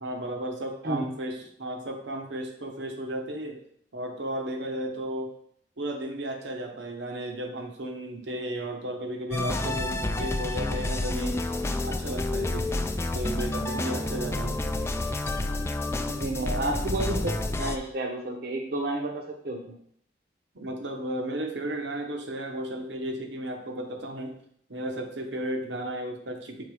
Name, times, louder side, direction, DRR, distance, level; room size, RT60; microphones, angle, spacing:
voice 1, 0.0-3.6 3.9-5.3 5.8-11.4 11.8-12.7 13.1-14.6 20.5-24.4 24.7-26.6, right 1 dB, 85° right, 4 dB, 1.1 m, -34 dB
sound 1, 9.3-17.8, left 2 dB, 15° left, 0.4 m, -29 dB
voice 2, 16.0-17.2 17.6-19.7, right 2 dB, 55° right, 0 dB, 0.8 m, -31 dB
6.8 x 3.8 x 4.9 m, 0.65 s
head